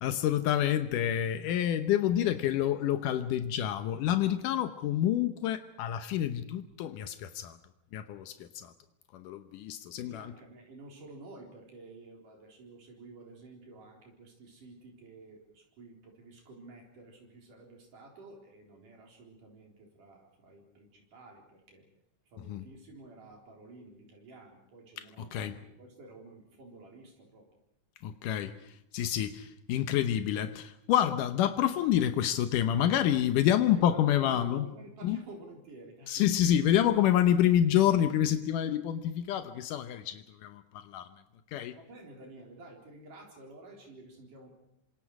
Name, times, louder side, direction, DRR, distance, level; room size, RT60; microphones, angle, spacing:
voice 1, 0.0-7.6 7.9-8.7 9.1-10.3 22.4-22.6 25.0-25.5 28.0-28.5 28.9-34.7 35.0-35.2 36.1-41.1 41.5-41.8, left 11 dB, 85° left, 10 dB, 2.5 m, -28 dB
voice 2, 10.1-21.9 22.3-27.5 33.6-36.7 41.7-44.5, right 2 dB, 80° right, 1 dB, 5.6 m, -51 dB
27.5 x 25.5 x 4.8 m, 0.80 s
omnidirectional pair, 3.6 m